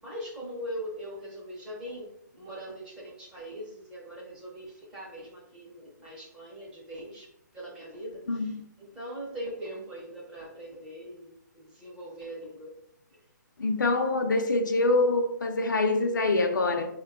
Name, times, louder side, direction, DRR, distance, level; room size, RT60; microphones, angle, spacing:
voice 1, 0.0-7.3 7.5-12.7, equal, 10° right, 0.6 m, -41 dB
voice 2, 8.3-8.6 13.6-16.9, left 2 dB, 75° left, 0.6 m, -25 dB
3.7 x 2.2 x 3.5 m
hypercardioid pair, 165°, 10 cm